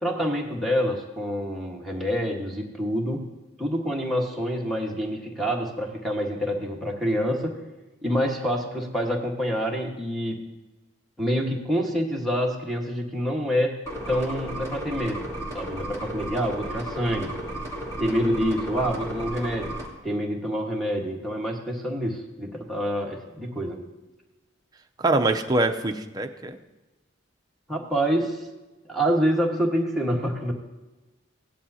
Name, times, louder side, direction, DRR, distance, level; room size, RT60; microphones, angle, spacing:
voice 1, 0.0-3.3 3.6-7.6 8.0-10.4 11.2-15.3 15.5-17.4 18.0-19.7 20.0-23.8 27.7-28.5 28.9-30.5, equal, ahead, 0 dB, 1.4 m, -27 dB
sound 1, 13.8-19.9, right 1 dB, 15° left, 2.3 m, -34 dB
voice 2, 25.0-26.6, right 2 dB, 20° right, 5 dB, 0.6 m, -24 dB
16.5 x 10.5 x 2.8 m, 1.1 s
head